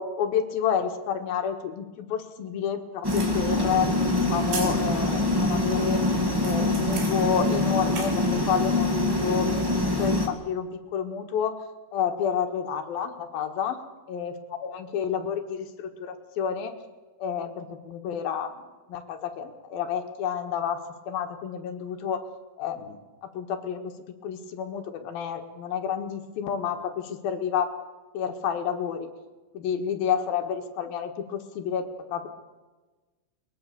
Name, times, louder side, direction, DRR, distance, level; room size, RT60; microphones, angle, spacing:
voice 1, 0.0-3.9 4.3-6.0 6.4-9.5 9.8-11.6 11.9-13.8 14.1-14.4 14.6-16.7 17.2-18.6 18.9-20.8 21.1-22.2 22.6-23.9 24.2-27.7 28.1-29.1 29.5-32.3, left 8 dB, 65° left, 5 dB, 3.2 m, -30 dB
sound 1, 3.0-10.3, left 2 dB, 15° right, 0.7 m, -25 dB
sound 2, 3.1-8.4, right 3 dB, 85° right, 5.6 m, -36 dB
22.0 x 21.0 x 6.8 m, 1.2 s
omnidirectional pair, 5.0 m